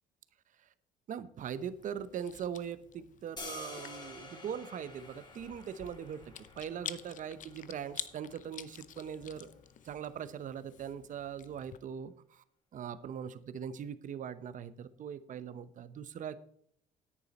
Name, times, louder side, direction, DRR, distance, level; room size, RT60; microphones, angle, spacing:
voice 1, 1.1-9.5 9.8-12.4 12.7-16.4, right 8 dB, 50° right, 14 dB, 0.8 m, -41 dB
Chewing mastication, 1.5-11.8, left 10 dB, 50° left, 0.7 m, -49 dB
sound 1, 3.4-9.5, left 2 dB, 25° left, 2.6 m, -50 dB
10.0 x 9.4 x 4.2 m, 0.66 s
cardioid pair, 110°, 17 cm